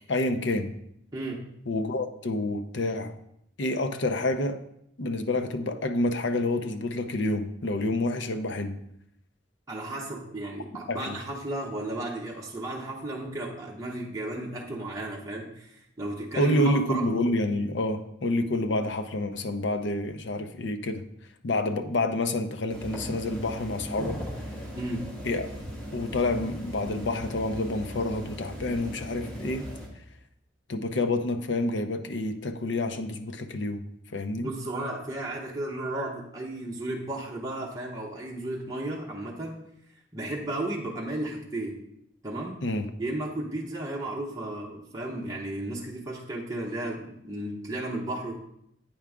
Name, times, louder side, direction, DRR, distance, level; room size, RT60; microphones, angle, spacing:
voice 1, 0.1-0.7 1.7-3.1 3.6-4.6 5.0-8.8 10.9-11.1 16.4-21.0 21.4-24.2 25.2-25.5 25.9-29.7 30.7-33.8 34.1-34.5 42.6-42.9, left 2 dB, 65° left, 8 dB, 0.6 m, -28 dB
voice 2, 1.1-1.4 9.7-17.1 24.7-25.1 34.4-39.6 40.1-41.8 42.2-42.6 43.0-48.4, right 1 dB, 15° right, -4 dB, 0.9 m, -34 dB
sound 1, 22.7-29.9, equal, 5° left, 1.5 m, -38 dB
8.7 x 4.7 x 3.5 m, 0.74 s
head